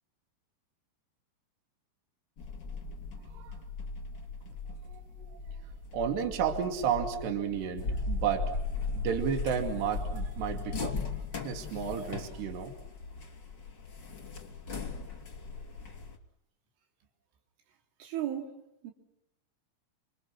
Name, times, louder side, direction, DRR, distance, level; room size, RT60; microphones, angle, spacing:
sound 1, 2.4-16.2, left 3 dB, 30° left, 2.8 m, -38 dB
voice 1, 4.9-5.3 5.9-8.5 8.9-10.9 11.3-12.7, right 7 dB, 65° right, 4.5 m, -32 dB
voice 2, 18.0-18.9, right 11 dB, 85° right, 5.8 m, -36 dB
29.5 x 27.0 x 6.3 m
omnidirectional pair, 5.4 m